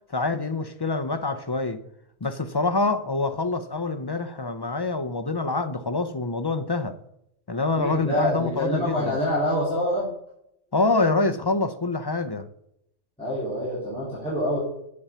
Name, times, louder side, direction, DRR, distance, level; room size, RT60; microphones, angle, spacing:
voice 1, 0.1-1.8 2.2-7.0 7.5-9.2 10.7-12.4, left 3 dB, 30° left, 0.4 m, -26 dB
voice 2, 7.7-10.1 13.2-14.6, equal, 5° left, 4.0 m, -26 dB
8.5 x 7.2 x 5.5 m
omnidirectional pair, 1.2 m